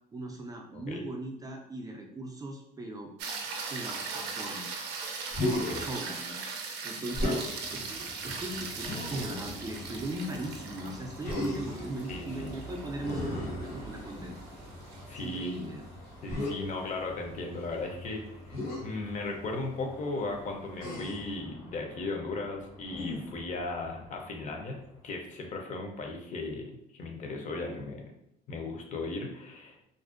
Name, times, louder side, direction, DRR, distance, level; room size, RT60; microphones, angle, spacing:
voice 1, 0.1-3.1 3.7-4.7 5.5-6.4 6.8-7.4 7.7-14.5 15.1-15.8, right 1 dB, 20° right, 1 dB, 0.3 m, -39 dB
sound 1, 3.2-15.6 20.1-20.2, right 4 dB, 85° right, 0.4 m, -40 dB
Human voice, 5.3-5.9 7.1-7.5 8.8-9.5 11.2-11.9 13.0-14.2 16.3-16.5 18.5-18.8 20.8-21.3 22.9-23.4, left 1 dB, 65° left, 0.9 m, -34 dB
sound 2, 7.1-25.0, equal, 80° left, 1.2 m, -48 dB
voice 2, 12.1-12.5 15.1-15.6 16.2-18.2 18.8-26.7 26.9-28.0 28.5-29.8, left 3 dB, 45° left, 2 dB, 0.6 m, -36 dB
2.5 x 2.1 x 2.4 m, 0.76 s
cardioid pair, 110°, 17 cm